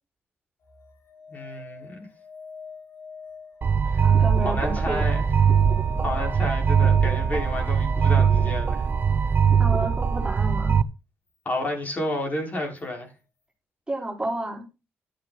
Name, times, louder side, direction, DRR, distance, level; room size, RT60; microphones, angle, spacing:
sound 1, 0.6-10.4 12.8-12.9, left 5 dB, 65° left, 4.9 m, -45 dB
voice 1, 1.3-2.1 3.9-4.1 4.4-5.3 6.0-8.9 11.4-13.1, left 1 dB, 35° left, 6.0 m, -31 dB
sound 2, 3.6-10.8, right 7 dB, 45° right, 0.7 m, -21 dB
voice 2, 4.0-5.1 9.6-10.8 13.9-14.7, right 1 dB, 15° right, 4.2 m, -31 dB
12.0 x 8.6 x 4.5 m
cardioid pair, 75°, 5 cm